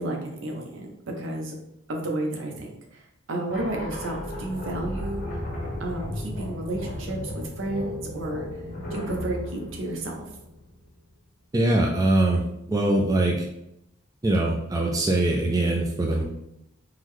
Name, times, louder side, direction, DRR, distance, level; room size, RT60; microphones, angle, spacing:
voice 1, 0.0-1.6 1.9-3.0 3.3-5.4 5.8-8.5 8.9-10.3, right 1 dB, 65° right, 1 dB, 0.7 m, -32 dB
sound 1, 3.5-10.9, left 1 dB, 45° left, 0.7 m, -34 dB
voice 2, 11.5-13.4 14.2-16.2, right 2 dB, 15° right, 0 dB, 0.3 m, -22 dB
3.8 x 2.1 x 3.1 m, 0.81 s
head